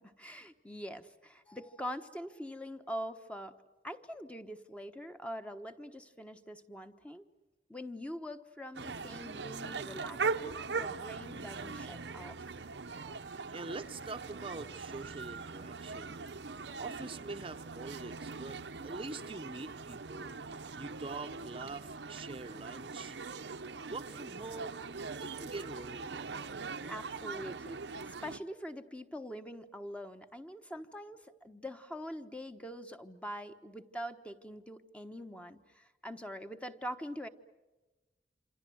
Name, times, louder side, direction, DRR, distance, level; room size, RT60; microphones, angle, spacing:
voice 1, 0.0-3.5 3.8-7.2 7.7-12.4 26.9-27.8 28.0-37.3, equal, 5° left, 7 dB, 1.1 m, -44 dB
sound 1, 8.7-28.4, right 4 dB, 85° right, 0.9 m, -41 dB
voice 2, 13.5-16.2 16.8-20.3 20.8-23.2 23.8-24.9 25.2-26.3, right 3 dB, 30° right, 8 dB, 0.8 m, -44 dB
27.5 x 27.0 x 7.8 m, 1.1 s
head